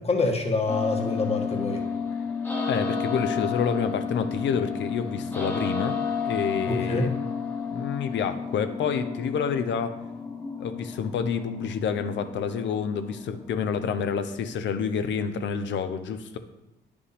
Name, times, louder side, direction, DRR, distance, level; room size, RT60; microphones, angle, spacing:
voice 1, 0.0-1.8 6.7-7.1, left 3 dB, 30° left, 2 dB, 1.4 m, -26 dB
sound 1, 0.7-14.6, left 5 dB, 10° left, 1.2 m, -32 dB
voice 2, 2.7-6.0 6.2-7.2 7.7-10.0 10.6-16.4, left 6 dB, 65° left, 9 dB, 0.7 m, -28 dB
9.7 x 5.1 x 3.4 m, 0.93 s
cardioid pair, 90°, 20 cm